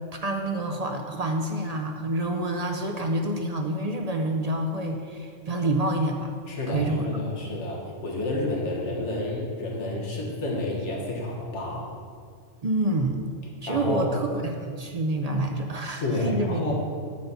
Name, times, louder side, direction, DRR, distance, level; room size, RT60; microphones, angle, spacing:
voice 1, 0.2-6.3 6.7-7.1 12.6-13.2 13.6-16.6, right 1 dB, 50° right, 3 dB, 0.5 m, -27 dB
voice 2, 6.5-11.9 13.7-14.1 16.0-16.7, left 2 dB, 65° left, -2 dB, 1.7 m, -30 dB
9.3 x 4.0 x 7.0 m, 2.1 s
omnidirectional pair, 1.3 m